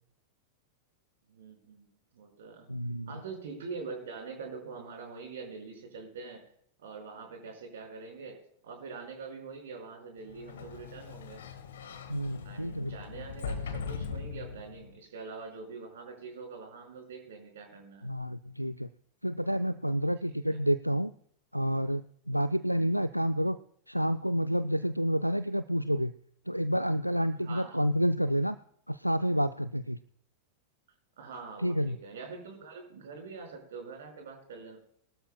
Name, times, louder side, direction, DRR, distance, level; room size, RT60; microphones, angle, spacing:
voice 1, 1.3-1.9 2.1-2.7 3.1-6.4 6.8-8.4 8.6-11.4 12.4-18.1 20.3-20.6 27.4-27.8 31.2-34.8, right 4 dB, 60° right, 4 dB, 5.1 m, -44 dB
voice 2, 2.7-3.1 12.1-13.0 18.0-18.9 19.2-21.1 21.5-23.6 23.9-26.1 26.5-28.6 28.9-30.0 31.6-32.0, equal, 90° right, 12 dB, 0.4 m, -29 dB
Sliding door, 10.3-15.0, left 6 dB, 65° left, 1.5 m, -40 dB
23.5 x 13.0 x 2.2 m, 0.67 s
figure-of-eight pair, 90°, 0 cm